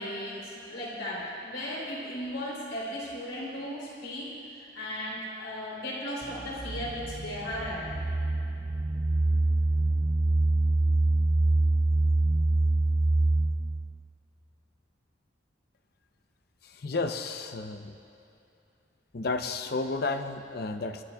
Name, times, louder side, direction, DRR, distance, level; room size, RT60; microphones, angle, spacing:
voice 1, 0.0-8.0, left 1 dB, 85° left, -5 dB, 3.6 m, -36 dB
sound 1, 6.2-14.0, right 2 dB, 20° right, 0.3 m, -25 dB
voice 2, 16.8-18.0 19.1-21.0, left 3 dB, 55° left, 7 dB, 0.7 m, -32 dB
24.5 x 13.0 x 2.3 m, 2.7 s
head